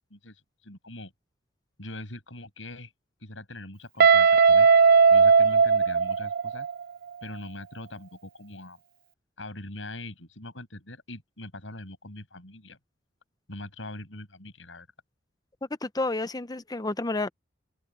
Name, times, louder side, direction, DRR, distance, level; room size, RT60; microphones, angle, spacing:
voice 1, 0.1-1.1 1.8-2.9 3.2-4.7 5.1-6.7 7.2-8.8 9.4-12.8 13.5-14.9, left 1 dB, 85° left, 7.8 m, -42 dB
Guitar, 4.0-6.8, right 5 dB, 55° right, 0.4 m, -18 dB
voice 2, 15.8-17.3, left 2 dB, 20° left, 0.7 m, -30 dB
open air
head